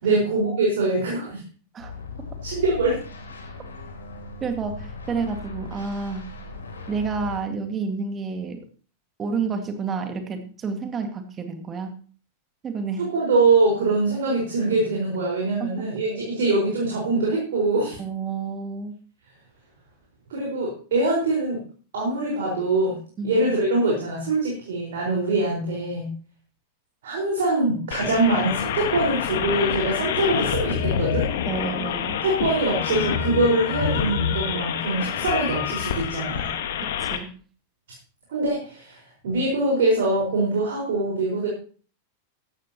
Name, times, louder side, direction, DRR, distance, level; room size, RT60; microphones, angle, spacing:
voice 1, 0.0-1.4 2.4-3.0 13.0-18.0 20.3-21.6 21.9-23.0 23.2-26.1 27.0-31.3 32.2-36.5 38.3-41.5, right 2 dB, 60° right, -2 dB, 4.8 m, -23 dB
sound 1, 1.8-7.4, left 3 dB, 70° left, 3.1 m, -38 dB
voice 2, 4.4-6.3 6.9-8.7 9.2-12.0 12.6-13.1 15.6-15.9 18.0-19.0 23.2-23.4 31.5-32.2 36.8-37.4, right 5 dB, 25° right, 6 dB, 2.0 m, -30 dB
sound 2, 27.9-37.2, left 8 dB, 55° left, 1.5 m, -27 dB
15.5 x 12.5 x 3.0 m, 0.40 s
figure-of-eight pair, 90°, 0 cm